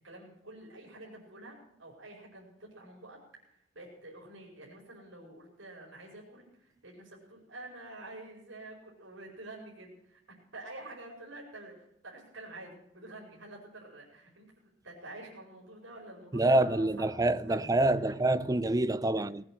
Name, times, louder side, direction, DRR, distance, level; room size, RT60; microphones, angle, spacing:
voice 1, 0.0-3.2 3.5-10.2 10.5-17.7, right 2 dB, 85° right, 5.0 m, -48 dB
voice 2, 16.3-19.4, right 2 dB, 20° right, 0.5 m, -26 dB
19.5 x 8.8 x 7.7 m
head